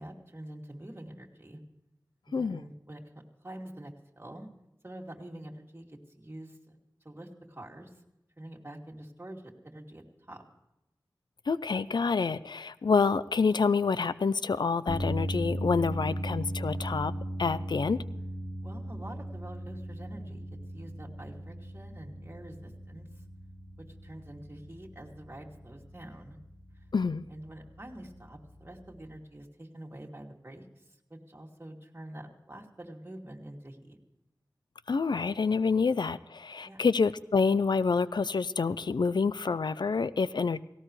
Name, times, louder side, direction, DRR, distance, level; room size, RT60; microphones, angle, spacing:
voice 1, 0.0-1.6 2.3-3.0 3.4-4.5 4.8-6.8 7.0-7.9 8.4-10.4 18.6-20.4 20.7-23.1 23.9-26.4 27.3-30.8 31.1-34.0 36.6-36.8, right 1 dB, 30° right, -1 dB, 2.7 m, -46 dB
voice 2, 11.5-17.1 17.4-18.0 26.9-27.2 34.9-40.6, left 4 dB, 85° left, 16 dB, 0.5 m, -27 dB
sound 1, 14.9-29.1, equal, 15° left, 2.1 m, -38 dB
18.0 x 17.0 x 3.2 m, 0.94 s
wide cardioid pair, 50°, 7 cm